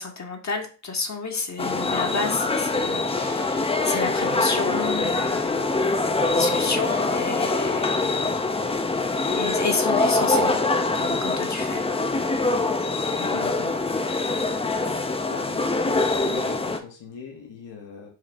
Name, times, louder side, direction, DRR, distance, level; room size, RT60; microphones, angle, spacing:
voice 1, 0.0-8.0 9.3-11.8, left 4 dB, 40° left, 3 dB, 0.9 m, -30 dB
sound 1, 1.6-16.8, left 3 dB, 15° left, 0.5 m, -24 dB
voice 2, 13.2-13.7 15.1-15.6 15.9-18.1, left 5 dB, 70° left, 0 dB, 1.1 m, -40 dB
4.8 x 2.4 x 3.4 m, 0.36 s
supercardioid pair, 55°, 45 cm